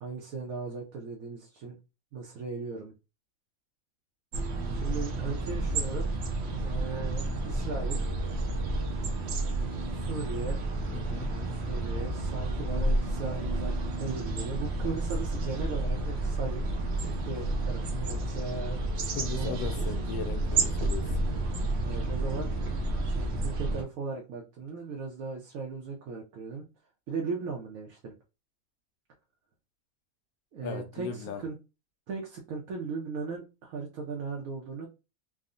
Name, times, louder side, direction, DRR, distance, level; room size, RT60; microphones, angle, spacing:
voice 1, 0.0-1.8 2.1-2.9 4.7-6.1 6.5-8.1 9.9-10.6 11.0-16.6 17.0-18.8 19.3-19.9 21.8-22.5 23.0-26.6 27.1-28.1 30.5-31.6 32.1-34.9, right 4 dB, 80° right, 1.1 m, -37 dB
sound 1, 4.3-23.8, right 2 dB, 65° right, 0.7 m, -31 dB
voice 2, 10.9-11.3 19.1-21.2 30.6-31.4, left 7 dB, 85° left, 1.1 m, -38 dB
3.6 x 2.0 x 2.4 m
omnidirectional pair, 1.5 m